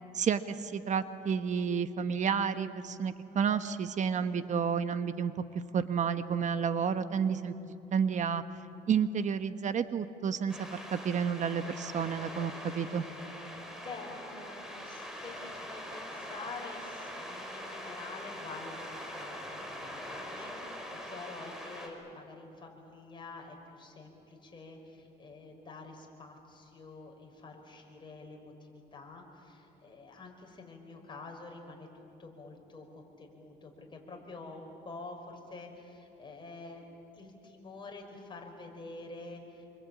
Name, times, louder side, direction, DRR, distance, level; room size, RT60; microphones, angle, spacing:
voice 1, 0.1-5.3 5.7-7.5 7.9-8.4 8.9-13.0, right 7 dB, 45° right, 10 dB, 1.2 m, -30 dB
sound 1, 10.5-21.9, equal, 5° right, 4.9 m, -43 dB
voice 2, 13.8-31.9 32.2-36.9 37.1-39.6, left 3 dB, 30° left, 1 dB, 5.4 m, -47 dB
27.0 x 24.5 x 8.7 m, 2.8 s
cardioid pair, 110°, 17 cm